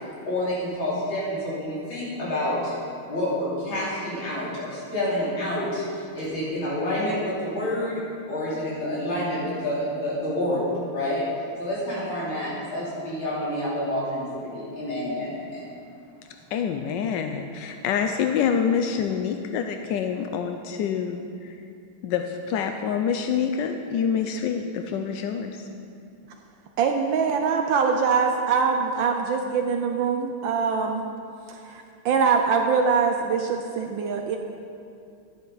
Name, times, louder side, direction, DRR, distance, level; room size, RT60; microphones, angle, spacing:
voice 1, 0.3-2.7 3.1-8.0 8.3-11.2 11.6-15.6, left 1 dB, 60° left, -9 dB, 3.8 m, -28 dB
voice 2, 16.5-21.5 22.0-25.7, left 7 dB, 80° left, 5 dB, 1.0 m, -26 dB
voice 3, 26.8-31.0 31.6-34.4, right 5 dB, 75° right, 4 dB, 1.2 m, -23 dB
11.0 x 10.0 x 3.9 m, 2.5 s
omnidirectional pair, 2.4 m